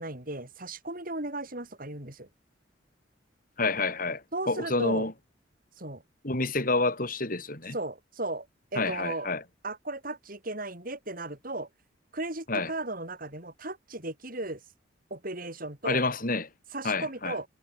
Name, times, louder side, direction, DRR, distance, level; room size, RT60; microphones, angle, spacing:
voice 1, 0.0-2.3 4.3-5.1 5.8-6.0 7.7-8.5 8.7-9.3 9.6-11.7 12.1-14.6 15.1-16.0 16.7-17.5, right 2 dB, 50° right, 7.5 m, -36 dB
voice 2, 3.6-5.1 6.2-7.7 8.8-9.4 12.5-12.7 15.8-16.5 16.8-17.4, left 3 dB, 50° left, 4.2 m, -28 dB
head